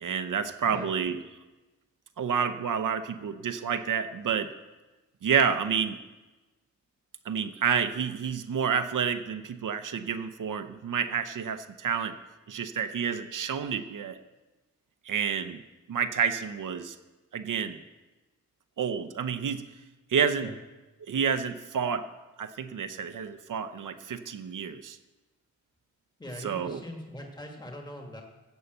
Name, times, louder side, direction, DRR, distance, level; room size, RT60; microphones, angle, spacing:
voice 1, 0.0-1.2 2.2-4.5 5.2-6.0 7.3-12.2 12.5-14.2 15.1-15.6 15.9-17.0 17.3-17.8 18.8-19.7 20.1-20.5 21.1-22.1 22.4-25.0 26.4-26.8, right 7 dB, 85° right, 10 dB, 0.7 m, -29 dB
voice 2, 26.2-28.2, left 1 dB, 15° left, 2 dB, 1.5 m, -41 dB
15.0 x 5.6 x 7.8 m, 1.1 s
wide cardioid pair, 130°, 30 cm